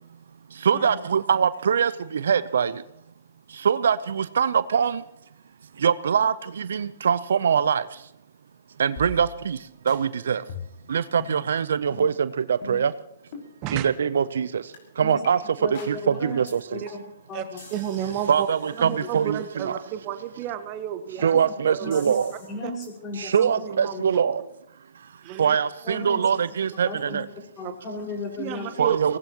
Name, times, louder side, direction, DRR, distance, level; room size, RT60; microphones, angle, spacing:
voice 1, 0.6-2.7 3.6-5.0 5.8-7.8 8.8-9.6 9.9-10.4 10.9-12.9 13.7-14.6 15.0-15.4 15.9-16.6 18.3-19.8 21.2-22.3 23.2-24.4 25.4-27.2 28.8-29.2, right 7 dB, 70° right, 16 dB, 0.6 m, -23 dB
sound 1, 9.0-9.6 9.9-10.0 10.5-10.8 11.2-11.4 11.9-12.1 12.6-12.9 13.3-13.5 14.0-14.2 14.7-14.8 15.2-15.3 15.7-16.0 16.5-16.6 16.9-17.2 17.6-19.4 21.9-22.5 22.8-22.9, left 4 dB, 50° left, 5.7 m, -42 dB
voice 2, 15.6-16.4 16.7-16.8 17.3-17.6 18.8-18.9 21.2-21.3 21.8-22.1 22.5-23.4 23.9-24.0 25.8-26.2 26.8-27.2 27.6-28.7, left 2 dB, 25° left, 0 dB, 5.4 m, -35 dB
voice 3, 17.3-18.5 18.9-21.4 21.7-22.0 22.6-22.7 23.3-24.2 25.2-25.6 25.9-26.0 27.6-27.7 28.4-29.0, right 11 dB, 40° right, 9 dB, 1.0 m, -32 dB
24.5 x 18.5 x 3.0 m, 0.76 s
hypercardioid pair, 120°, 0 cm